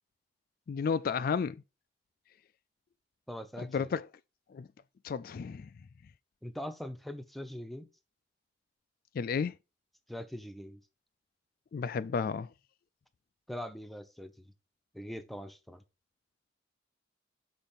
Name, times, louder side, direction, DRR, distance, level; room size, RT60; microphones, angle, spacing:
voice 1, 0.7-1.6 3.6-4.1 4.5-4.7 5.0-5.7 9.1-9.5 11.7-12.5, left 6 dB, 50° left, 0.3 m, -32 dB
voice 2, 3.3-3.9 6.4-7.9 10.1-10.8 13.5-14.5 14.9-15.8, equal, ahead, 0.7 m, -42 dB
6.4 x 5.1 x 4.2 m
head